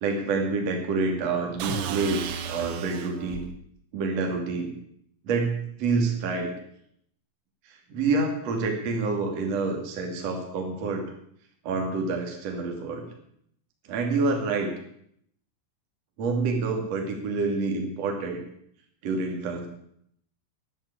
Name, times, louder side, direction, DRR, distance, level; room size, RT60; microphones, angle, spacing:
voice 1, 0.0-3.4 3.9-4.7 5.2-6.5 7.9-11.0 11.6-13.1 13.9-14.7 16.2-18.4 19.0-19.7, right 3 dB, 40° right, 2 dB, 2.9 m, -27 dB
sound 1, 1.6-3.5, right 7 dB, 90° right, 4.0 m, -33 dB
12.0 x 11.0 x 8.4 m, 0.70 s
omnidirectional pair, 5.9 m